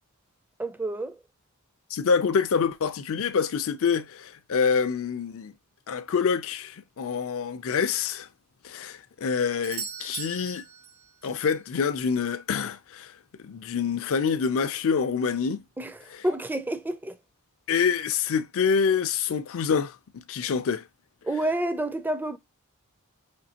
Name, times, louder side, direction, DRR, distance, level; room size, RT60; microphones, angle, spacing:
voice 1, 0.6-1.2 15.8-17.2 21.2-22.4, right 1 dB, 10° right, 0.4 m, -29 dB
voice 2, 1.9-5.5 5.9-8.3 8.6-10.6 11.2-13.1 13.4-15.6 16.1-16.2 17.7-20.8, left 6 dB, 65° left, 0.4 m, -26 dB
Doorbell, 9.6-11.5 15.5-15.6, right 7 dB, 80° right, 0.8 m, -39 dB
5.2 x 3.1 x 2.8 m
head